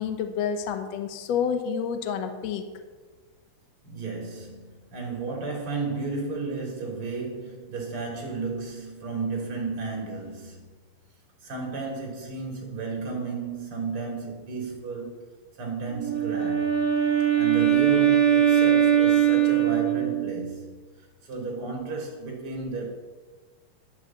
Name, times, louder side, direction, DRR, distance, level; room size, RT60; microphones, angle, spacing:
voice 1, 0.0-2.6, left 7 dB, 65° left, 7 dB, 1.7 m, -29 dB
voice 2, 3.8-10.6 11.4-15.2 15.6-16.9 17.4-20.7 21.2-22.8, right 4 dB, 35° right, 0 dB, 3.7 m, -33 dB
Wind instrument woodwind instrument, 15.9-20.4, right 10 dB, 25° left, 1.0 m, -21 dB
12.0 x 7.7 x 7.4 m, 1.4 s
omnidirectional pair, 4.3 m